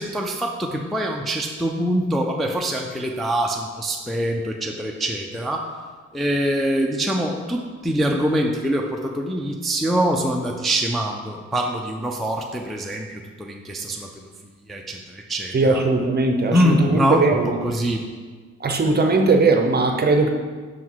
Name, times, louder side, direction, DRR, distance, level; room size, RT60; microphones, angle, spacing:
voice 1, 0.0-5.6 6.1-14.1 14.7-15.8 16.5-18.0, equal, ahead, 0 dB, 0.4 m, -24 dB
voice 2, 15.5-17.6 18.6-20.3, right 3 dB, 35° right, 4 dB, 0.7 m, -19 dB
6.3 x 3.7 x 4.6 m, 1.5 s
cardioid pair, 90°, 30 cm